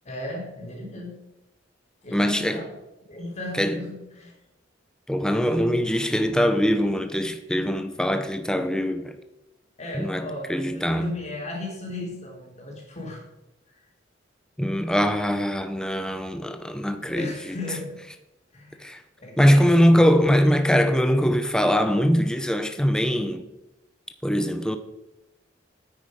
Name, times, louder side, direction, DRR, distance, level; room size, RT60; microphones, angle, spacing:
voice 1, 0.0-1.3 2.0-2.8 3.1-4.3 9.8-13.3 17.0-18.0 18.5-20.0, left 2 dB, 40° left, 3.5 m, -36 dB
voice 2, 2.1-2.7 3.6-3.8 5.1-9.2 10.0-11.2 14.6-17.5 18.8-19.0 19.4-23.5 24.2-24.8, equal, 5° left, 0.6 m, -22 dB
9.6 x 9.2 x 5.1 m
head